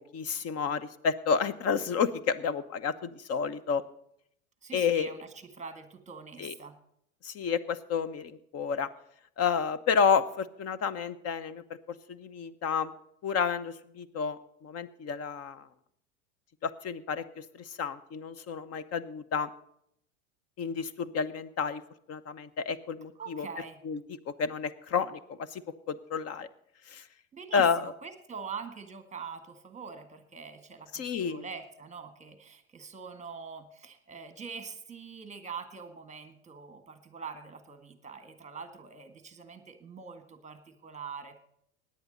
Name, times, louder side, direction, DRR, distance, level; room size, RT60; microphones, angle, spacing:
voice 1, 0.1-3.8 4.7-5.1 6.4-6.5 7.2-8.9 9.4-12.9 13.2-15.7 16.6-19.5 20.6-21.8 22.1-23.5 23.8-24.0 24.3-25.6 25.9-26.5 26.9-27.0 27.5-27.9 30.9-31.4, left 6 dB, 35° left, 14 dB, 1.1 m, -30 dB
voice 2, 4.6-6.8 23.2-23.8 27.3-41.4, right 5 dB, 15° right, 8 dB, 1.8 m, -44 dB
17.5 x 10.5 x 4.0 m, 0.72 s
hypercardioid pair, 95°, 43 cm